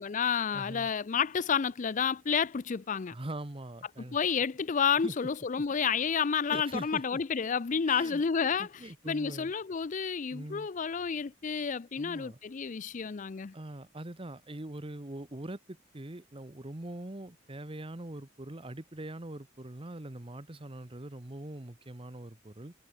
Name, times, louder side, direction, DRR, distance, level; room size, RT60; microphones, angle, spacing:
voice 1, 0.0-3.2 4.1-13.5, left 6 dB, 40° left, 0.4 m, -30 dB
voice 2, 0.5-0.9 3.1-4.2 5.0-5.1 5.6-5.7 6.5-7.2 7.9-8.2 8.6-9.5 10.3-10.7 12.0-12.4 13.5-22.7, right 1 dB, 25° right, 1.1 m, -42 dB
head